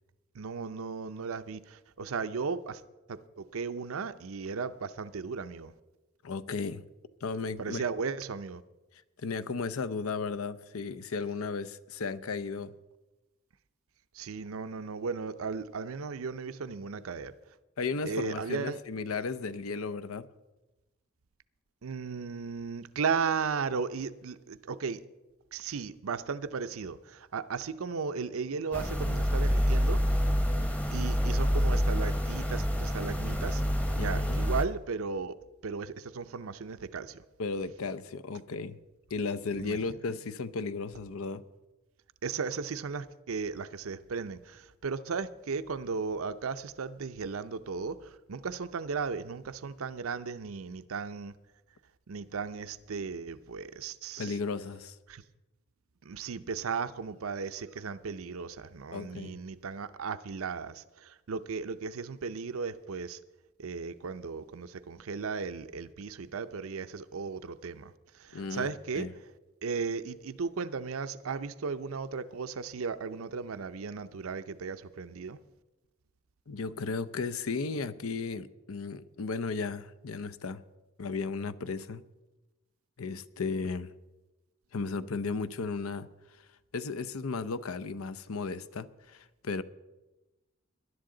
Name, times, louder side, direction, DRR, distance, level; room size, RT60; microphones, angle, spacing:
voice 1, 0.3-2.8 3.1-5.7 7.6-8.6 14.1-17.3 18.0-18.8 21.8-25.0 25.5-30.0 30.9-33.6 34.0-35.3 35.6-37.2 39.6-40.0 42.2-51.3 52.1-54.4 55.1-55.2 56.0-63.2 63.6-69.1 69.6-75.4, right 5 dB, 85° right, 0.6 m, -36 dB
voice 2, 6.2-6.8 7.2-7.8 9.2-12.8 17.8-20.3 34.0-34.4 37.4-38.8 39.1-41.4 54.2-55.0 58.9-59.4 68.3-68.7 69.0-69.1 76.5-80.6 81.0-82.0 83.0-83.9 84.7-86.1 86.7-89.6, left 4 dB, 90° left, 0.6 m, -35 dB
sound 1, 28.7-34.6, equal, 5° left, 0.8 m, -27 dB
19.0 x 11.0 x 3.8 m
head